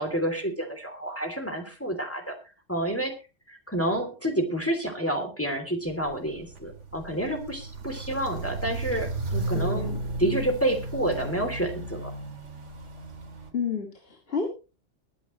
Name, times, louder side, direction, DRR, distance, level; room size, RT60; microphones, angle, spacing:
voice 1, 0.0-2.4 2.7-3.1 3.5-12.1, right 1 dB, 10° left, 4 dB, 2.9 m, -29 dB
Walk footsteps, 5.9-13.5, right 2 dB, 75° right, 2.5 m, -34 dB
voice 2, 9.5-10.4 13.5-14.5, left 6 dB, 50° left, 2 dB, 2.3 m, -32 dB
21.5 x 9.9 x 3.1 m, 0.32 s
omnidirectional pair, 1.3 m